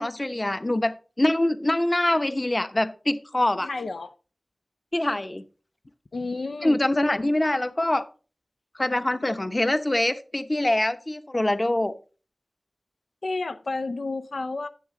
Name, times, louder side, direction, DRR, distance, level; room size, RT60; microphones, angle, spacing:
voice 1, 0.0-3.7 4.9-5.4 6.6-8.0 8.8-11.9, left 1 dB, 30° left, 0.8 m, -24 dB
voice 2, 3.6-4.1 6.1-6.8 13.2-14.7, left 3 dB, 85° left, 0.6 m, -31 dB
10.5 x 7.2 x 3.8 m
wide cardioid pair, 60°, 0 cm